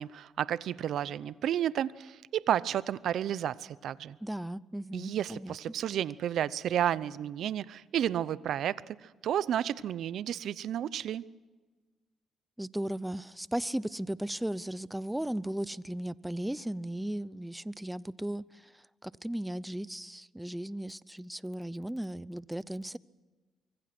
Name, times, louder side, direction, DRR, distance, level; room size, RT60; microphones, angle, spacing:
voice 1, 0.0-4.2 4.9-11.2, right 10 dB, 70° right, 18 dB, 0.7 m, -32 dB
voice 2, 4.2-5.6 12.6-18.7 19.0-23.0, right 1 dB, 5° right, 19 dB, 0.7 m, -36 dB
25.0 x 24.0 x 6.1 m, 1.3 s
cardioid pair, 90°, 0 cm